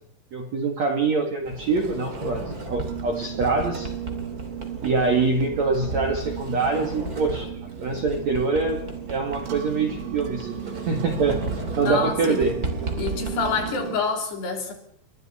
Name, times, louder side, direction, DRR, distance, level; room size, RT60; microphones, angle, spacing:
voice 1, 0.3-3.9 4.8-7.5 7.8-8.8 9.1-10.6 10.9-11.4 11.8-12.6, right 4 dB, 50° right, 3 dB, 2.3 m, -24 dB
Sliding door, 1.4-13.7, right 2 dB, 25° right, 2.2 m, -35 dB
sound 1, 2.8-14.0, right 10 dB, 75° right, 4.3 m, -36 dB
voice 2, 11.8-12.4 13.0-14.7, left 5 dB, 65° left, 3 dB, 5.3 m, -27 dB
29.0 x 23.5 x 4.3 m, 0.70 s
omnidirectional pair, 5.3 m